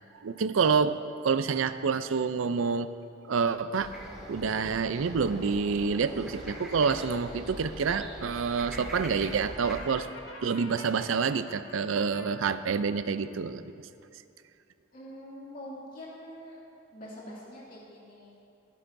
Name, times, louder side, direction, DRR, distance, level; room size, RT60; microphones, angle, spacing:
voice 1, 0.2-1.0 1.2-2.9 3.3-3.9 4.3-10.1 10.4-13.6, right 5 dB, 80° right, 12 dB, 0.5 m, -27 dB
sound 1, 3.8-9.8, equal, 5° right, 2.2 m, -42 dB
Brass instrument, 9.6-12.3, left 2 dB, 70° left, 1.5 m, -46 dB
voice 2, 14.9-16.6 16.9-18.5, equal, 45° left, -6 dB, 2.6 m, -45 dB
22.0 x 8.4 x 2.7 m, 2.7 s
head